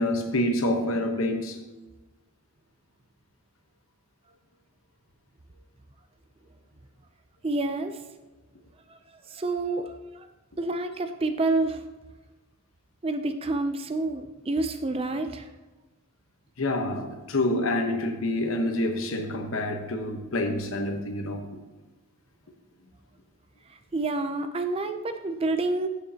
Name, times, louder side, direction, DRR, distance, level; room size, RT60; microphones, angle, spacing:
voice 1, 0.0-1.6 16.6-21.4, left 1 dB, 70° left, 5 dB, 1.0 m, -27 dB
voice 2, 7.4-8.0 9.3-10.3 10.6-11.8 13.0-15.5 23.9-25.9, right 2 dB, 25° right, 8 dB, 0.4 m, -28 dB
14.0 x 6.4 x 2.8 m, 1.1 s
head